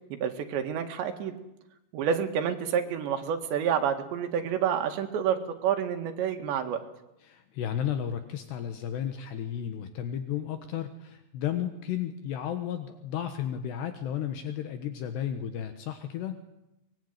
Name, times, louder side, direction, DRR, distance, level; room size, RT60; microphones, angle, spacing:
voice 1, 0.1-1.3 1.9-6.8, right 8 dB, 75° right, 6 dB, 4.2 m, -29 dB
voice 2, 7.2-16.3, left 9 dB, 70° left, 8 dB, 3.4 m, -33 dB
24.5 x 21.5 x 9.5 m, 0.89 s
omnidirectional pair, 5.1 m